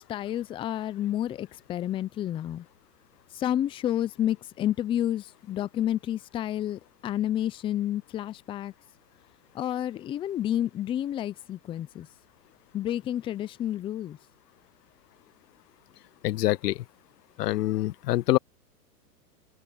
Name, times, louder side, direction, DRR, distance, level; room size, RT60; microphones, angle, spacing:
voice 1, 0.0-2.7 3.3-8.7 9.5-12.1 12.7-14.2, left 11 dB, 10° left, 0.5 m, -30 dB
voice 2, 16.2-16.8 17.4-18.4, left 16 dB, 75° left, 0.5 m, -25 dB
open air
hypercardioid pair, 125°, 48 cm